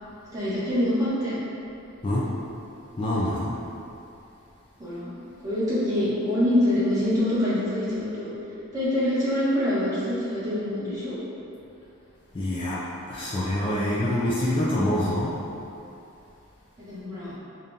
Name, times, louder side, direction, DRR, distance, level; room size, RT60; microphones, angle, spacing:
voice 1, 0.3-1.4 4.8-5.1 5.4-8.3 8.7-11.2 16.8-17.3, left 1 dB, 15° right, -12 dB, 1.3 m, -25 dB
voice 2, 3.0-3.5 12.3-12.8 13.1-15.3, left 1 dB, 25° left, -7 dB, 0.4 m, -25 dB
5.1 x 2.5 x 2.7 m, 2.8 s
head